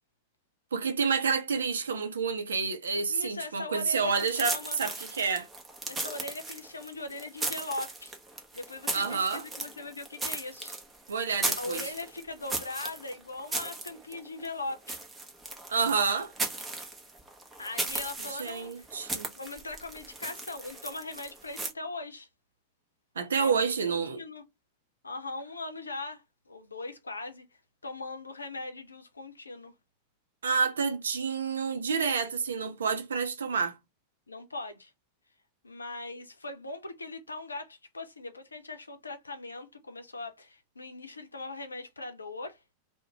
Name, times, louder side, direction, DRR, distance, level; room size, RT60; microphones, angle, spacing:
voice 1, 0.7-5.5 8.9-9.4 11.1-11.8 15.7-16.3 18.2-19.3 23.2-24.2 30.4-33.8, right 5 dB, 70° right, 0.5 m, -29 dB
voice 2, 3.1-4.8 5.9-8.1 8.5-10.8 11.6-15.0 17.6-18.9 19.4-22.3 23.3-24.4 25.0-27.5 27.8-29.7 34.3-34.9 35.6-42.6, left 2 dB, 80° left, 0.5 m, -40 dB
sound 1, 4.1-21.7, right 2 dB, 15° right, 0.7 m, -37 dB
2.4 x 2.1 x 2.8 m
figure-of-eight pair, 90°, 0 cm